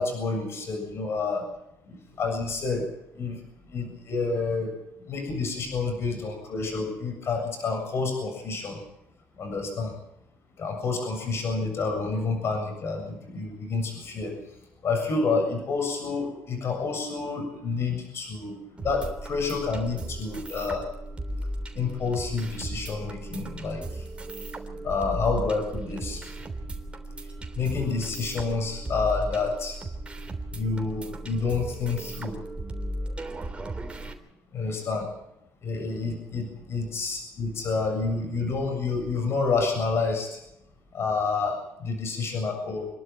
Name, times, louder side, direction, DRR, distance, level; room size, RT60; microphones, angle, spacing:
voice 1, 0.0-1.4 1.9-2.8 3.2-3.4 3.7-4.7 5.1-8.8 9.4-9.9 10.6-14.3 14.8-20.9 21.8-24.0 24.8-26.2 27.6-29.8 30.5-32.4 34.5-35.1 35.6-40.4 40.9-42.9, left 4 dB, 55° left, 4 dB, 7.4 m, -29 dB
sound 1, 18.8-34.1, right 1 dB, 20° right, 3.4 m, -36 dB
27.5 x 12.0 x 9.1 m, 0.83 s
cardioid pair, 90°, 5 cm